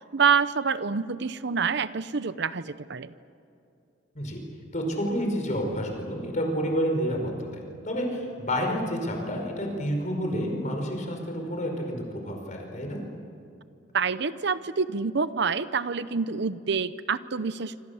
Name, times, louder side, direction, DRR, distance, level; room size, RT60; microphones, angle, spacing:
voice 1, 0.1-3.1 13.9-17.8, right 5 dB, 65° right, 14 dB, 0.8 m, -27 dB
voice 2, 4.7-7.5 7.8-13.0, equal, 40° left, 3 dB, 5.2 m, -29 dB
26.5 x 26.0 x 7.2 m, 2.6 s
head